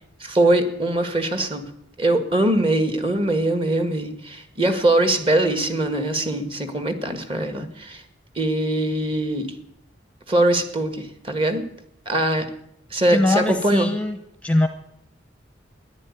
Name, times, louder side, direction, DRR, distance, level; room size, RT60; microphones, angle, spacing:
voice 1, 0.2-1.7 2.0-8.0 8.4-9.5 10.3-11.6 12.1-12.5 12.9-13.9, right 1 dB, 30° right, 8 dB, 1.8 m, -22 dB
voice 2, 13.1-14.2 14.4-14.7, left 1 dB, 5° left, 7 dB, 0.9 m, -21 dB
14.0 x 11.0 x 9.7 m, 0.76 s
head